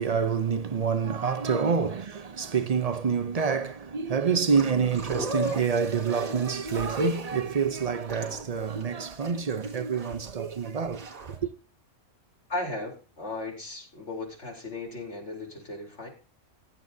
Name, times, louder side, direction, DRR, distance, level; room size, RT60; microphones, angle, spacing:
voice 1, 0.0-11.5, right 6 dB, 50° right, 0.4 m, -27 dB
sound 1, 4.6-11.4, right 1 dB, 75° right, 2.2 m, -39 dB
voice 2, 12.5-16.1, left 2 dB, 50° left, 3.8 m, -36 dB
15.0 x 11.0 x 2.7 m
omnidirectional pair, 1.5 m